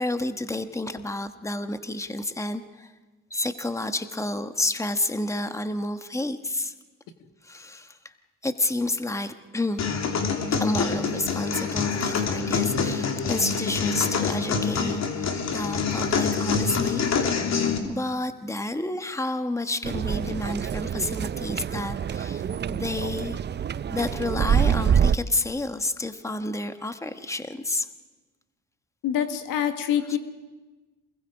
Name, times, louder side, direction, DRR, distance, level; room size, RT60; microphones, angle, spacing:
voice 1, 0.0-2.9 3.3-6.7 7.4-8.1 8.4-9.8 10.6-17.1 17.3-23.4 23.9-27.9, left 2 dB, 10° left, 8 dB, 1.4 m, -30 dB
sound 1, 9.8-17.8, left 5 dB, 55° left, 2.9 m, -26 dB
sound 2, 19.8-25.2, right 8 dB, 30° right, 0.6 m, -26 dB
voice 2, 29.0-30.2, left 9 dB, 75° left, 7 dB, 1.7 m, -25 dB
28.0 x 21.0 x 5.0 m, 1.2 s
supercardioid pair, 70°, 33 cm